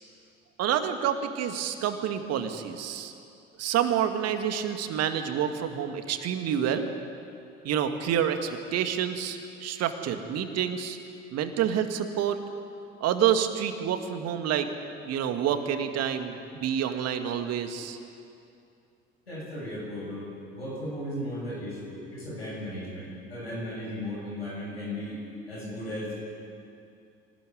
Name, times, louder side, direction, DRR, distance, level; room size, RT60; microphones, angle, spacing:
voice 1, 0.6-3.1 3.6-6.9 7.6-11.0 11.3-12.4 13.0-14.7 15.0-18.0, right 9 dB, 55° right, 7 dB, 2.1 m, -28 dB
voice 2, 19.3-25.2 25.5-26.1, left 1 dB, 90° left, -3 dB, 7.1 m, -36 dB
24.5 x 18.5 x 9.4 m, 2.5 s
figure-of-eight pair, 55°, 30 cm